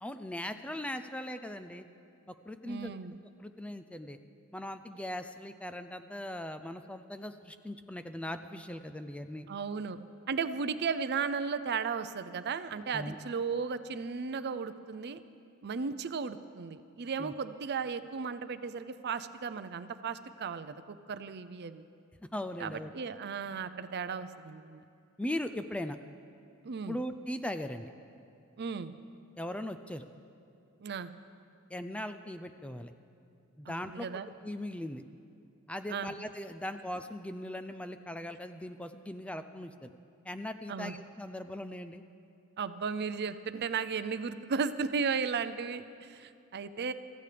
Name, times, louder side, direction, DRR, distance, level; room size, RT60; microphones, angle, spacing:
voice 1, 0.0-1.9 2.5-2.9 3.4-4.2 4.5-9.5 12.9-13.2 17.2-17.3 22.3-22.9 25.2-26.0 26.9-27.9 29.4-30.0 31.7-32.9 33.6-34.1 34.4-35.0 35.7-39.9 40.3-42.0, left 1 dB, 5° left, 9 dB, 0.4 m, -39 dB
voice 2, 2.6-3.1 9.5-10.0 10.3-15.2 15.6-21.8 22.6-24.8 26.6-27.0 28.6-28.9 30.8-31.1 33.7-34.3 35.9-36.1 40.7-40.9 42.6-46.9, right 5 dB, 50° right, 12 dB, 0.5 m, -35 dB
24.5 x 14.5 x 3.4 m, 2.5 s
head